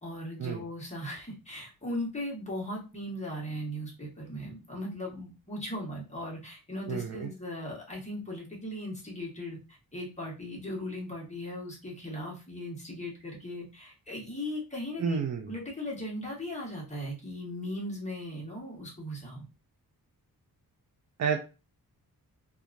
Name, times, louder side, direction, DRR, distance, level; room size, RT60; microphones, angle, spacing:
voice 1, 0.0-15.2 15.5-19.4, left 1 dB, 20° left, -3 dB, 1.3 m, -38 dB
voice 2, 6.9-7.3 15.0-15.5 21.2-21.4, right 6 dB, 45° right, 4 dB, 0.5 m, -30 dB
2.8 x 2.4 x 2.4 m, 0.31 s
wide cardioid pair, 100°, 37 cm